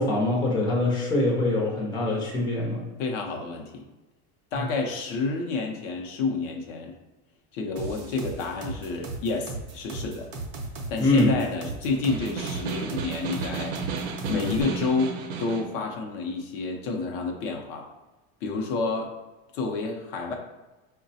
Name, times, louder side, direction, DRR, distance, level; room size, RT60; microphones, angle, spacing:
voice 1, 0.0-2.8 11.0-11.3, left 2 dB, 15° left, -4 dB, 0.6 m, -23 dB
voice 2, 3.0-3.9 4.5-6.9 7.5-10.3 10.9-13.8 14.3-17.9 18.4-19.1 19.5-20.3, left 3 dB, 60° left, 2 dB, 0.6 m, -29 dB
sound 1, 7.8-14.6, right 3 dB, 40° right, 0.5 m, -36 dB
Snare drum, 11.9-15.7, right 5 dB, 85° right, 0.6 m, -33 dB
4.7 x 2.1 x 2.6 m, 1.1 s
supercardioid pair, 165°, 31 cm